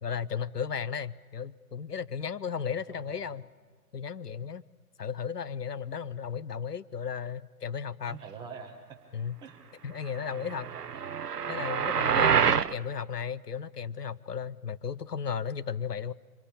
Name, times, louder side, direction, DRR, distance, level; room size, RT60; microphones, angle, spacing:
voice 1, 0.0-3.5 3.9-4.6 5.0-8.2 9.1-9.4 9.8-10.7 11.5-16.1, left 7 dB, 80° left, 16 dB, 0.9 m, -35 dB
voice 2, 2.7-3.4 8.1-9.0 9.4-9.6 10.2-11.0, right 6 dB, 10° right, 3 dB, 1.2 m, -46 dB
sound 1, 10.5-12.7, right 7 dB, 80° right, 0.8 m, -26 dB
25.0 x 23.5 x 8.7 m, 1.5 s
figure-of-eight pair, 135°, 47 cm